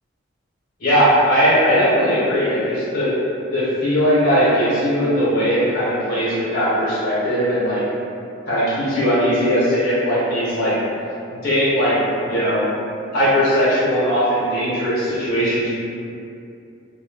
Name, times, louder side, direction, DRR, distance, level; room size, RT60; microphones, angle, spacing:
voice 1, 0.8-3.2 3.5-7.8 8.5-10.7 11.4-12.0 12.2-12.6 13.1-15.7, equal, 50° left, -10 dB, 1.0 m, -19 dB
2.5 x 2.2 x 3.4 m, 2.6 s
head